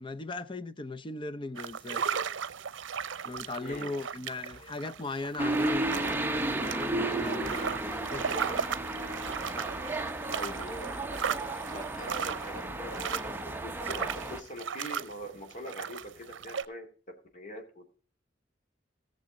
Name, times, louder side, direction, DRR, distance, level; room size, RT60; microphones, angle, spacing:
voice 1, 0.0-2.0 3.2-8.3, left 2 dB, 25° left, 0.7 m, -38 dB
sound 1, 1.6-16.7, right 7 dB, 85° right, 0.6 m, -36 dB
voice 2, 3.6-3.9 10.3-11.0 11.7-17.9, equal, 45° left, 2.9 m, -43 dB
sound 2, 4.5-10.9, right 2 dB, 70° left, 5.9 m, -61 dB
sound 3, 5.4-14.4, right 2 dB, 10° right, 0.8 m, -33 dB
17.5 x 7.0 x 3.7 m
head